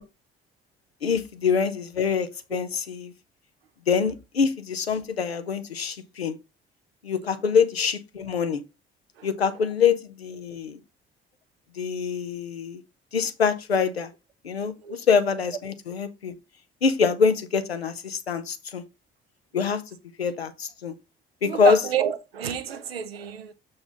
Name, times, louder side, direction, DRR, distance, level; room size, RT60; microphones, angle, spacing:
voice 1, 1.0-3.1 3.9-6.4 7.0-8.6 9.2-10.8 11.8-12.8 13.1-14.1 14.4-16.3 16.8-18.8 19.5-19.8 20.2-20.9 21.4-21.8, left 6 dB, 85° left, 0.6 m, -25 dB
voice 2, 21.4-23.5, right 9 dB, 80° right, 0.7 m, -29 dB
6.8 x 4.0 x 5.0 m
figure-of-eight pair, 45°, 30 cm